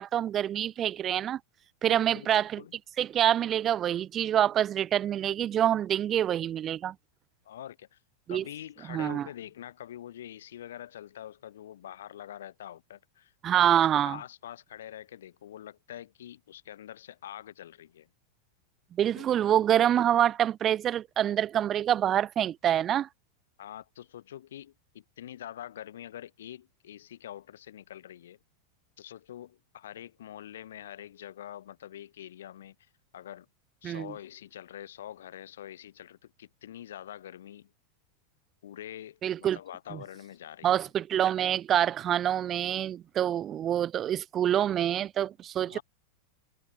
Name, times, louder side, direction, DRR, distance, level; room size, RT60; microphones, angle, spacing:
voice 1, 0.0-1.4 1.8-2.6 3.0-6.9 8.3-8.4 8.9-9.3 13.4-14.2 18.9-23.1 33.8-34.1 39.2-39.6 39.9-40.0 40.6-45.8, right 10 dB, 30° right, 0.9 m, -26 dB
voice 2, 1.8-2.7 7.4-8.0 8.3-18.1 19.1-19.3 23.6-28.4 29.0-33.5 33.8-37.7 38.6-40.9 45.6-45.8, left 11 dB, 60° left, 7.9 m, -45 dB
figure-of-eight pair, 90°, 0 cm